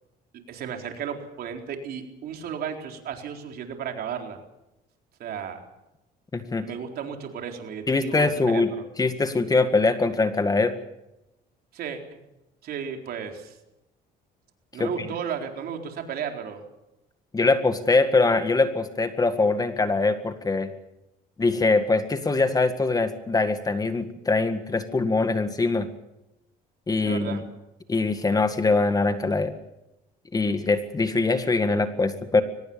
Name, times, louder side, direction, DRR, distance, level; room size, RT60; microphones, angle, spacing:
voice 1, 0.5-4.4 5.2-5.6 6.6-8.8 11.7-12.2 12.6-13.6 14.7-16.6 27.0-27.4, right 7 dB, 65° right, 3 dB, 4.1 m, -34 dB
voice 2, 6.3-6.7 7.9-8.7 9.0-10.7 14.8-15.1 17.3-20.7 21.4-25.9 26.9-27.4 27.9-29.5 30.3-32.4, left 3 dB, 20° left, 9 dB, 1.9 m, -23 dB
23.5 x 20.0 x 7.1 m, 0.91 s
cardioid pair, 110°, 17 cm